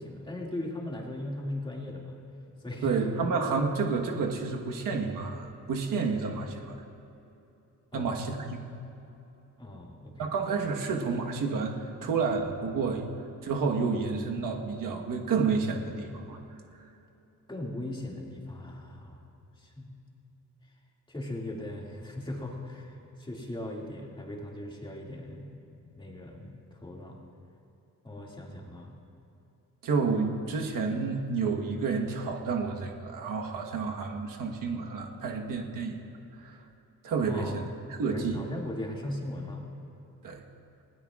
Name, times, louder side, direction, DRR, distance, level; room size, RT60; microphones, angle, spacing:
voice 1, 0.0-2.2 2.6-3.0 7.9-8.1 9.6-10.3 17.5-19.2 19.6-19.9 21.1-25.5 25.9-27.2 28.0-28.9 37.3-37.6 38.0-39.7, left 1 dB, 15° left, -2 dB, 2.2 m, -38 dB
voice 2, 2.8-6.8 7.9-8.6 10.2-13.1 13.4-16.4 29.8-36.0 36.4-36.6 37.0-37.7 38.0-38.4 40.2-40.4, right 4 dB, 70° right, 1 dB, 1.4 m, -30 dB
20.0 x 17.0 x 2.4 m, 2.9 s
cardioid pair, 105°, 34 cm